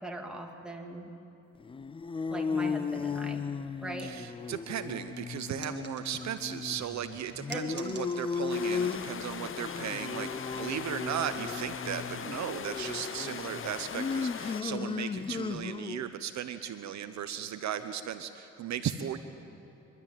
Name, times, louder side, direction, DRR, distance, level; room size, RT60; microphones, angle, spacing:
voice 1, 0.0-1.1 2.3-3.4 3.8-4.1 7.4-7.6, right 1 dB, 5° right, 1 dB, 2.4 m, -40 dB
sound 1, 1.6-16.1, left 5 dB, 20° left, 0.4 m, -36 dB
voice 2, 4.0-19.2, right 9 dB, 65° right, 10 dB, 0.9 m, -36 dB
sound 2, 5.6-6.7 7.2-8.7 9.0-9.4 10.0-10.2, right 5 dB, 35° right, 1.8 m, -48 dB
sound 3, 8.5-14.6, left 7 dB, 45° left, 0.9 m, -40 dB
24.0 x 12.5 x 9.1 m, 3.0 s
cardioid pair, 90°, 30 cm